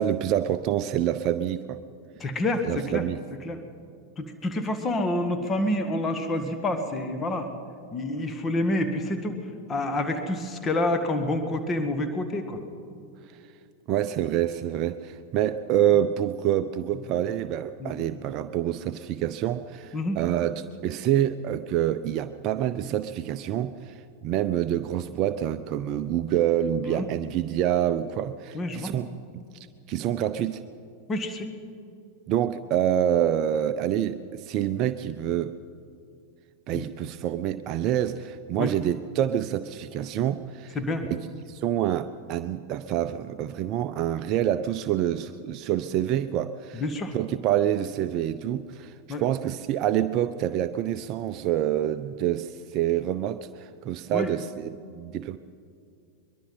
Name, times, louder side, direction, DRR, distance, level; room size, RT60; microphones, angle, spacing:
voice 1, 0.0-1.8 2.6-3.2 13.9-30.6 32.3-35.5 36.7-40.8 41.0-46.8 47.1-55.4, right 11 dB, 40° right, 11 dB, 0.6 m, -27 dB
voice 2, 2.2-3.0 3.5-3.6 4.2-7.5 7.9-9.4 9.7-12.6 17.8-18.0 19.9-20.2 26.8-27.1 28.5-28.9 31.1-31.5 36.7-36.8 38.6-38.7 40.8-41.0 46.7-47.1 49.1-49.2 54.1-54.3, left 1 dB, 20° left, 8 dB, 1.9 m, -28 dB
22.5 x 22.5 x 5.6 m, 2.4 s
figure-of-eight pair, 90°, 0 cm